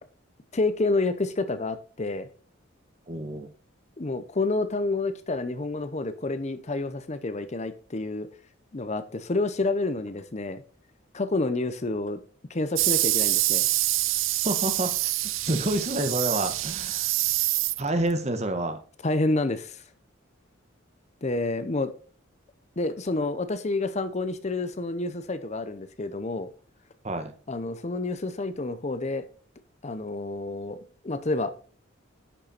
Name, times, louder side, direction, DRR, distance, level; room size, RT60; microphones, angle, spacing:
voice 1, 0.5-2.3 4.0-8.3 8.7-10.6 11.1-12.2 12.5-13.7 19.0-19.8 21.2-21.9 22.8-26.5 27.5-29.3 29.8-30.8 31.0-31.5, left 2 dB, 35° left, 11 dB, 0.7 m, -29 dB
voice 2, 3.1-3.5 14.4-15.1 15.4-17.1 17.8-18.8 27.0-27.3, right 1 dB, 35° right, 8 dB, 1.3 m, -28 dB
sound 1, 12.8-18.1, right 17 dB, 70° right, 0.5 m, -26 dB
10.0 x 6.6 x 4.3 m, 0.39 s
head